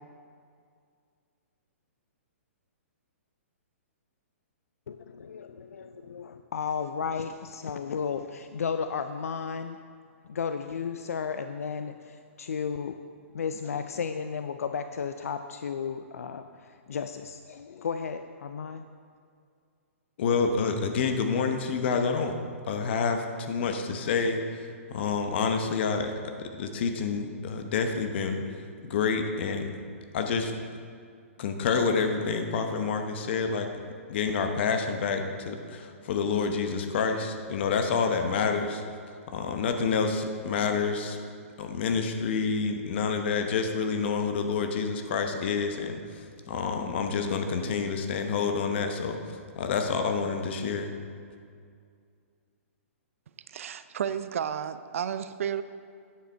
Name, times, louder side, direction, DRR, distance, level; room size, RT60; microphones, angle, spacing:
voice 1, 4.9-9.8 10.2-13.0 13.3-18.8, left 6 dB, 90° left, 9 dB, 0.4 m, -34 dB
voice 2, 20.2-22.3 22.7-29.7 30.1-30.5 31.4-33.7 34.1-38.8 39.3-41.2 41.6-49.2 49.6-50.9, left 5 dB, 50° left, 6 dB, 0.9 m, -28 dB
voice 3, 53.5-55.6, right 8 dB, 70° right, 13 dB, 0.5 m, -32 dB
9.3 x 6.8 x 4.4 m, 2.2 s
hypercardioid pair, 155°, 8 cm